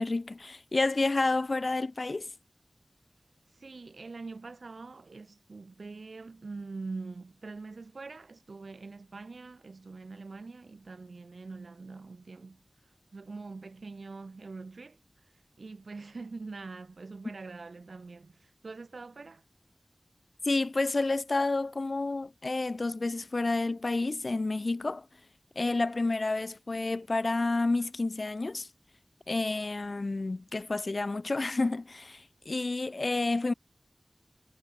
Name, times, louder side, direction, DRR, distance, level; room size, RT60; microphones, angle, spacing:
voice 1, 0.0-2.3 20.4-25.1 25.6-28.7 29.3-33.5, left 3 dB, 60° left, 0.5 m, -30 dB
voice 2, 3.6-12.6 13.1-15.0 15.6-19.4, right 3 dB, 85° right, 0.7 m, -44 dB
wide cardioid pair, 50°, 0 cm